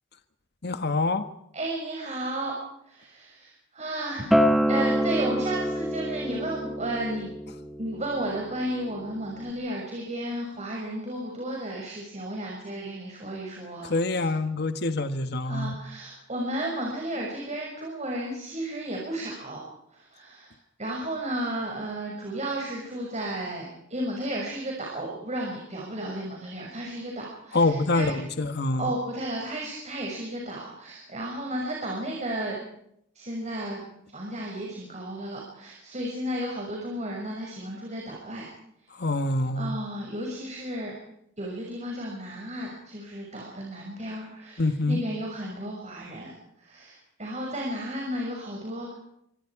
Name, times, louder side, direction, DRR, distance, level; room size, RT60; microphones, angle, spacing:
voice 1, 0.6-1.2 13.8-15.7 27.5-28.9 38.9-39.7 44.6-45.0, left 2 dB, 55° left, 9 dB, 1.4 m, -26 dB
voice 2, 1.5-2.5 2.8-4.3 4.7-7.3 7.8-14.3 15.4-19.6 19.9-28.2 28.8-32.6 33.1-33.8 34.1-38.5 39.5-41.0 41.4-48.9, right 1 dB, 35° right, -1 dB, 6.3 m, -33 dB
Acoustic guitar, 4.3-9.5, equal, ahead, 1.4 m, -27 dB
26.0 x 25.5 x 4.9 m, 0.77 s
head